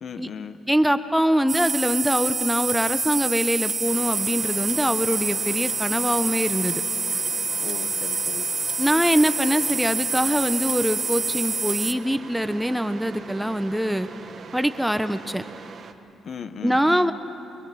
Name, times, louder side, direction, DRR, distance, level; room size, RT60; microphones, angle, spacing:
voice 1, 0.0-0.6 7.6-8.5 16.2-17.1, left 6 dB, 55° left, 10 dB, 1.0 m, -36 dB
voice 2, 0.7-6.8 8.8-14.1 14.5-15.4 16.6-17.1, equal, 5° right, 10 dB, 0.7 m, -23 dB
sound 1, 1.5-11.9, right 4 dB, 35° right, 0.9 m, -27 dB
sound 2, 3.8-15.9, right 5 dB, 50° right, 1.3 m, -42 dB
24.0 x 22.5 x 6.2 m, 2.9 s
cardioid pair, 90°, 0 cm